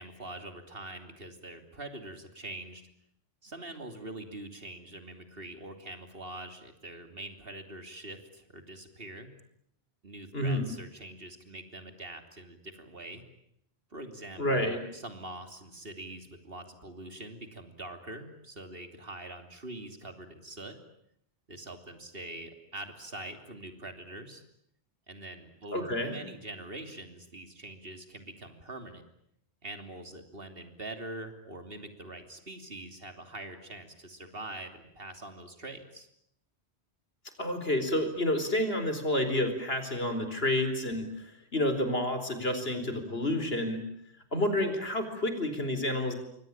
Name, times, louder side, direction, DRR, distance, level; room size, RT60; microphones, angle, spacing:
voice 1, 0.0-2.8 3.4-9.3 10.0-13.2 13.9-20.8 21.5-24.4 25.1-29.0 29.6-36.1, right 1 dB, 60° right, 7 dB, 3.3 m, -44 dB
voice 2, 10.3-10.7 14.4-14.8 25.7-26.2 37.4-43.8 44.3-46.1, left 1 dB, 65° left, 8 dB, 4.6 m, -29 dB
27.5 x 24.0 x 8.8 m, 0.73 s
omnidirectional pair, 1.1 m